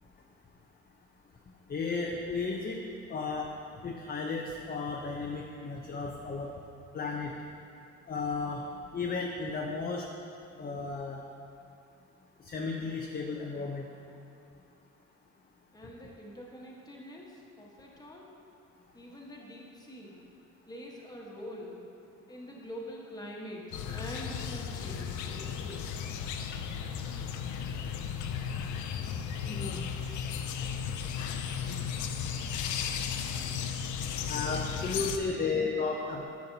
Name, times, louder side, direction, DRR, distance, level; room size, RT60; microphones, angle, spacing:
voice 1, 1.7-2.8 3.1-3.5 3.8-6.5 6.9-7.3 8.1-8.6 8.9-10.0 10.6-11.2 12.4-13.8 29.5-29.8 34.3-36.2, left 4 dB, 30° left, 0 dB, 0.6 m, -34 dB
voice 2, 15.7-18.4 18.9-20.2 20.7-21.8 22.3-25.9, equal, 15° left, -3 dB, 1.2 m, -45 dB
sound 1, 23.7-35.2, left 7 dB, 75° left, 0.5 m, -35 dB
8.8 x 5.8 x 2.7 m, 2.5 s
cardioid pair, 90°, 30 cm